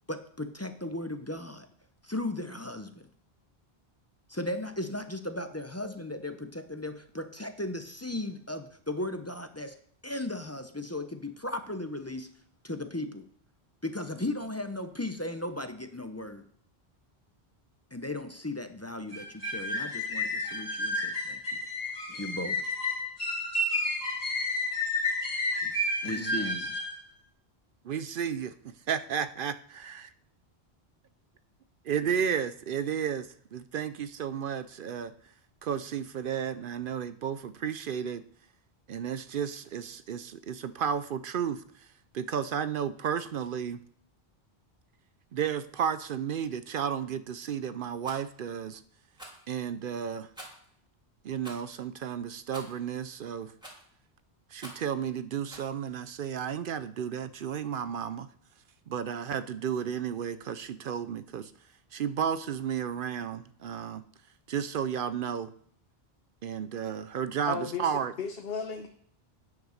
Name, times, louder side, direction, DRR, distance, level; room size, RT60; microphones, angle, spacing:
voice 1, 0.1-1.7 2.0-3.0 4.3-9.7 10.0-12.3 12.6-13.3 13.8-16.4 17.9-21.4 22.1-22.6 25.6-25.7 26.0-26.7, left 1 dB, 20° left, 8 dB, 0.5 m, -36 dB
sound 1, 19.1-27.0, left 2 dB, 35° left, 2.2 m, -31 dB
voice 2, 26.0-26.6 27.8-28.5 28.9-30.1 31.8-35.1 35.6-38.2 38.9-41.6 42.1-43.8 45.3-48.8 49.5-50.3 51.2-53.5 54.5-58.3 58.9-61.5 61.9-64.0 64.5-65.5 66.4-68.1, right 8 dB, 60° right, 13 dB, 0.7 m, -33 dB
Rattle, 48.0-48.2 49.1-49.5 50.3-50.7 51.4-51.7 52.5-52.8 53.6-53.9 54.6-54.9 55.5-55.7, equal, 5° right, 2.8 m, -46 dB
voice 3, 67.5-67.9 68.2-68.9, left 5 dB, 65° left, 5 dB, 1.0 m, -34 dB
9.3 x 5.3 x 6.5 m, 0.62 s
omnidirectional pair, 1.1 m